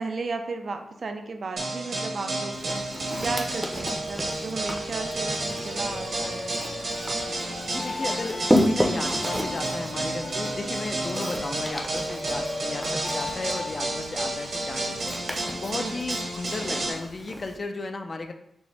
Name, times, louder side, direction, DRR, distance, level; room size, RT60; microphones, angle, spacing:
voice 1, 0.0-6.6 15.8-16.0, right 3 dB, 50° right, 6 dB, 0.4 m, -34 dB
sound 1, 1.6-16.9, right 2 dB, 70° right, 1.3 m, -31 dB
Walk footsteps, 2.5-17.6, equal, 5° right, 0.6 m, -32 dB
sound 2, 5.6-13.9, left 3 dB, 65° left, 1.1 m, -38 dB
voice 2, 7.7-15.2 15.6-18.3, left 3 dB, 40° left, 6 dB, 0.4 m, -34 dB
6.0 x 2.1 x 3.3 m, 0.77 s
wide cardioid pair, 105°, 0 cm